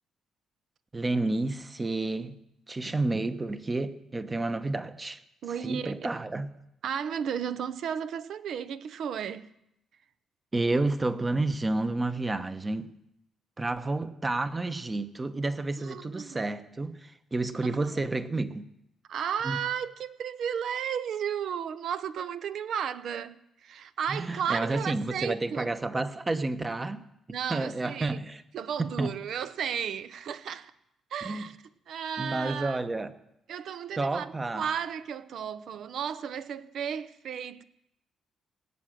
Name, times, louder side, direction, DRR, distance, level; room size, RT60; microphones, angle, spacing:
voice 1, 0.9-2.4 2.7-5.2 5.6-6.5 10.5-13.0 13.6-18.7 19.4-19.6 24.1-27.0 27.5-28.4 28.8-29.1 31.2-31.5 32.2-33.2 34.0-34.7, right 2 dB, 25° right, 1.0 m, -30 dB
voice 2, 5.4-6.0 6.8-9.5 15.8-16.5 17.6-18.0 19.1-25.7 27.3-28.2 28.5-30.7 31.1-31.6 31.9-32.8 33.5-37.6, right 8 dB, 70° right, 0.7 m, -34 dB
18.0 x 7.6 x 7.7 m
cardioid pair, 90°, 0 cm